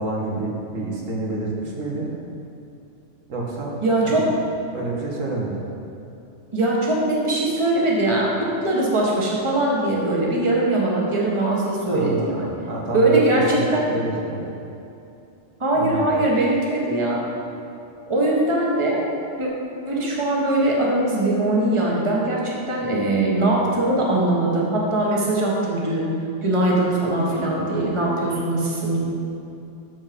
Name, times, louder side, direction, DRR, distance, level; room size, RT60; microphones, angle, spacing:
voice 1, 0.0-2.1 3.3-3.8 4.0-4.3 4.7-5.7 11.9-14.5 15.7-16.1, right 2 dB, 90° right, -3 dB, 1.8 m, -28 dB
voice 2, 3.8-4.3 6.5-12.5 12.9-13.9 15.6-17.2 18.1-19.0 19.4-19.5 19.9-26.1 26.4-29.0, right 2 dB, 25° right, -4 dB, 1.4 m, -21 dB
12.5 x 4.5 x 5.2 m, 2.7 s
omnidirectional pair, 1.3 m